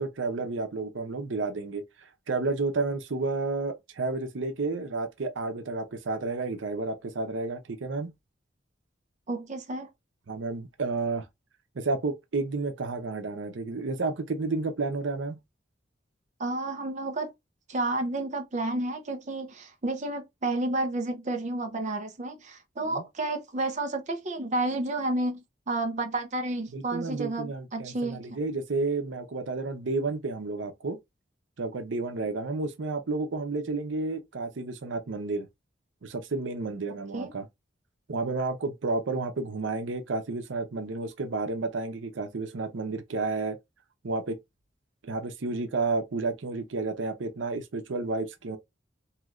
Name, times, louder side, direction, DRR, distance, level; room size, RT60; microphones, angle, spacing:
voice 1, 0.0-8.1 10.3-11.3 11.7-15.4 22.8-23.0 26.7-31.0 31.6-35.5 36.0-37.4 38.1-43.6 44.0-44.4 45.0-48.6, right 3 dB, 90° right, 0.7 m, -31 dB
voice 2, 9.3-9.9 16.4-17.3 17.7-25.4 25.7-28.4 37.1-37.3, right 2 dB, 40° right, 0.5 m, -31 dB
3.1 x 2.8 x 2.4 m
head